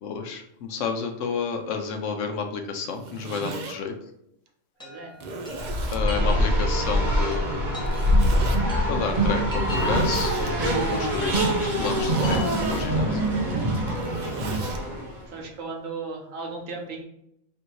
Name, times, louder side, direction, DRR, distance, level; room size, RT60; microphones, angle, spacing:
voice 1, 0.0-3.9 5.9-7.8 8.9-13.2, left 5 dB, 70° left, 5 dB, 1.0 m, -31 dB
Zipper (clothing), 2.8-3.7 4.5-4.6 5.1-6.0 7.8-8.6 9.6-10.5 12.0-12.9 13.7-14.8, right 3 dB, 60° right, 0.4 m, -37 dB
Chime, 4.8-12.9, left 1 dB, 5° left, 0.6 m, -42 dB
voice 2, 4.8-5.1 5.7-6.4 14.8-14.9 15.3-17.0, right 3 dB, 90° right, 1 dB, 1.3 m, -37 dB
Race car auto racing, 5.6-15.2, equal, 40° right, 1.0 m, -24 dB
3.3 x 2.6 x 4.5 m, 0.77 s
omnidirectional pair, 1.3 m